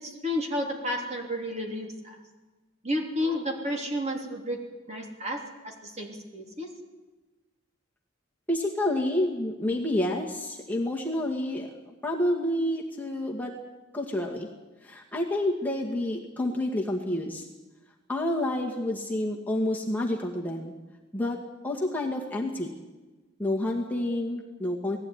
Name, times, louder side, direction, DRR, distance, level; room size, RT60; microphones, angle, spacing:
voice 1, 0.0-2.2 2.8-4.6 4.9-6.7, left 1 dB, 35° right, 1 dB, 3.4 m, -31 dB
voice 2, 8.5-11.7 12.0-13.5 13.9-14.5 14.8-17.5 18.1-20.7 21.1-21.4 21.6-22.7 23.4-25.0, left 1 dB, 10° left, -1 dB, 2.0 m, -29 dB
19.0 x 15.5 x 9.7 m, 1.2 s
head